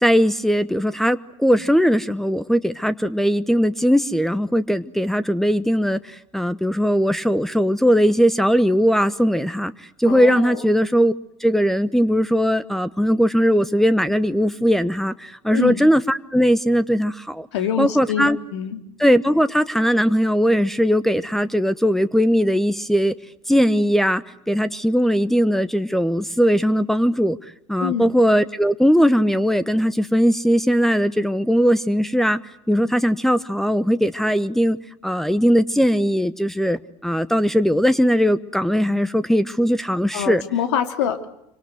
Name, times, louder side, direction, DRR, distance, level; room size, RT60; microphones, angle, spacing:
voice 1, 0.0-9.7 10.0-11.1 11.4-17.5 17.8-18.4 19.0-23.1 23.5-27.4 27.7-32.4 32.7-34.8 35.0-40.4 41.0-41.1, equal, ahead, 1.1 m, -19 dB
voice 2, 10.1-10.6 15.5-15.8 17.5-18.8 27.8-28.1 40.1-41.3, left 9 dB, 70° left, 2.9 m, -25 dB
28.0 x 25.5 x 7.9 m
hypercardioid pair, 80°, 15 cm